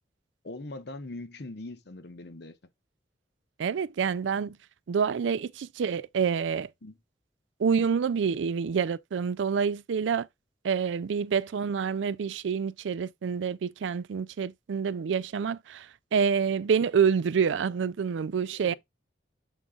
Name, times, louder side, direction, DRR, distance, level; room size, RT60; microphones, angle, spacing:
voice 1, 0.4-2.6 6.8-6.9 18.5-18.7, left 2 dB, 65° left, 1.0 m, -41 dB
voice 2, 3.6-4.6 4.9-6.7 7.6-10.3 10.6-18.7, right 6 dB, 80° right, 0.4 m, -27 dB
7.2 x 3.8 x 3.7 m
head